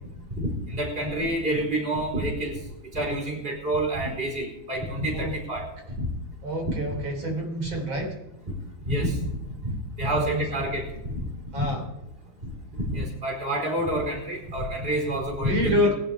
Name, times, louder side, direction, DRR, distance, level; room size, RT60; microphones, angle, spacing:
voice 1, 0.4-2.6 2.9-5.6 6.0-6.1 6.7-6.8 8.9-9.2 9.6-10.9 11.1-11.3 11.5-11.6 12.8-15.9, right 1 dB, 25° right, 0 dB, 4.5 m, -28 dB
voice 2, 6.4-8.2 10.2-10.5 11.5-11.8 15.4-15.9, equal, 75° right, 2 dB, 4.2 m, -27 dB
21.5 x 11.5 x 3.5 m, 0.90 s
omnidirectional pair, 2.2 m